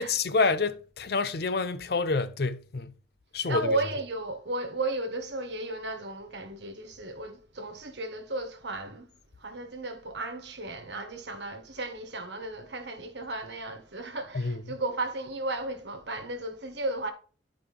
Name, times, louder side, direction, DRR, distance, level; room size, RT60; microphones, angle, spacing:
voice 1, 0.0-2.9 3.3-3.8 14.3-14.6, left 4 dB, 55° left, 0.5 m, -28 dB
voice 2, 3.4-9.1 9.4-17.1, right 2 dB, 65° right, 1.4 m, -34 dB
11.5 x 4.9 x 3.4 m
head